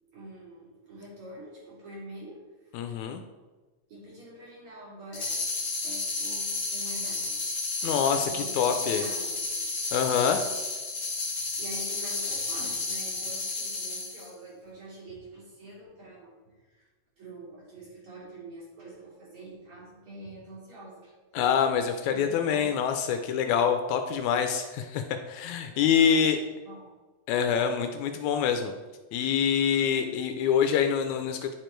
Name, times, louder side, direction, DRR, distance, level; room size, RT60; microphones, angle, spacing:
voice 1, 0.1-2.8 3.9-5.4 5.8-7.4 7.8-9.5 11.1-16.9 17.2-21.1 22.1-22.8 25.9-26.9, right 2 dB, 45° right, -6 dB, 3.5 m, -45 dB
voice 2, 2.7-3.2 7.8-9.0 9.9-10.4 21.3-25.0 25.3-26.4 27.3-28.7 29.1-31.5, left 7 dB, 80° left, 6 dB, 1.8 m, -25 dB
sound 1, 5.1-14.3, left 3 dB, 55° left, 0.7 m, -32 dB
9.4 x 4.9 x 4.4 m, 1.3 s
omnidirectional pair, 3.5 m